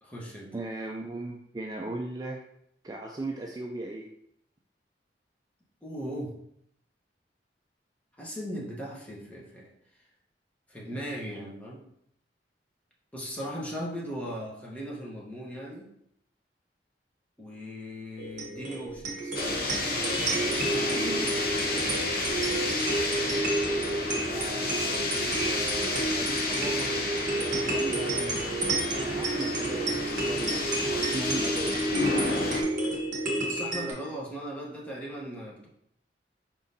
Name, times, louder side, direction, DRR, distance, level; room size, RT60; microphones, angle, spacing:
voice 1, 0.0-0.5 5.8-6.4 8.2-9.7 10.7-11.8 13.1-15.9 17.4-19.3 20.3-21.4 28.0-28.4 33.4-35.7, equal, 10° left, -4 dB, 0.9 m, -38 dB
voice 2, 0.5-2.4 2.8-4.1 20.9-21.5 24.3-26.9 27.6-28.1 28.9-29.9 30.2-31.8, right 2 dB, 20° right, 0 dB, 0.3 m, -37 dB
sound 1, 18.2-33.9, right 2 dB, 50° right, 1.0 m, -30 dB
sound 2, 19.3-32.6, left 3 dB, 60° left, 0.7 m, -31 dB
4.6 x 3.6 x 2.7 m, 0.72 s
head